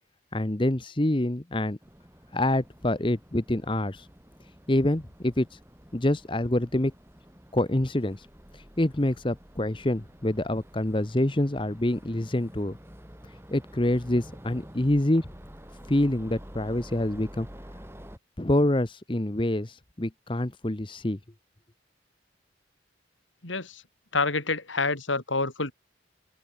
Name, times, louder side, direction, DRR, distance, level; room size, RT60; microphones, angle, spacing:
voice 1, 0.3-1.8 2.3-4.1 4.7-5.6 5.9-6.9 7.5-8.3 8.5-12.8 13.5-15.3 15.9-17.5 18.4-21.2, left 1 dB, 25° left, 0.9 m, -26 dB
sound 1, 1.8-18.2, equal, 15° right, 6.0 m, -49 dB
voice 2, 23.4-23.8 24.1-25.7, left 3 dB, 90° left, 4.7 m, -27 dB
open air
head